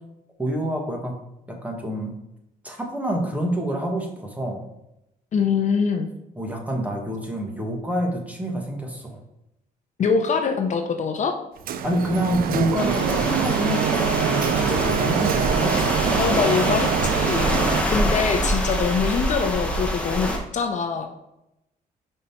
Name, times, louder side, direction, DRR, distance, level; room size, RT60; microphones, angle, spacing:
voice 1, 0.4-1.2 1.5-2.1 2.6-4.7 6.4-9.2 11.8-15.7, right 1 dB, 10° right, 1 dB, 1.4 m, -27 dB
voice 2, 5.3-6.1 10.0-11.4 16.2-17.5 17.9-21.1, left 5 dB, 50° left, 6 dB, 0.7 m, -23 dB
Printer, 11.7-17.8, right 8 dB, 70° right, 0.5 m, -24 dB
sound 1, 12.8-20.4, equal, 5° left, 1.2 m, -25 dB
5.6 x 5.0 x 4.3 m, 0.86 s
cardioid pair, 120°, 16 cm